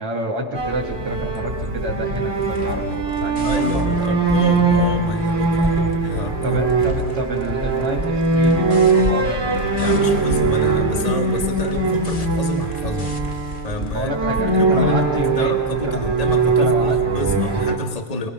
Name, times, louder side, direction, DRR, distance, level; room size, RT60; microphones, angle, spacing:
voice 1, 0.0-3.9 6.4-9.7 13.8-16.0 16.6-17.0, right 1 dB, 45° right, -2 dB, 3.0 m, -28 dB
sound 1, 0.5-17.7, right 3 dB, 25° right, 2.7 m, -21 dB
sound 2, 1.0-14.0, left 6 dB, 30° left, 1.0 m, -33 dB
voice 2, 3.4-6.6 9.7-13.4 13.6-14.1 14.4-18.3, left 2 dB, 50° left, 2 dB, 0.4 m, -28 dB
29.5 x 23.0 x 6.0 m, 1.3 s
omnidirectional pair, 3.8 m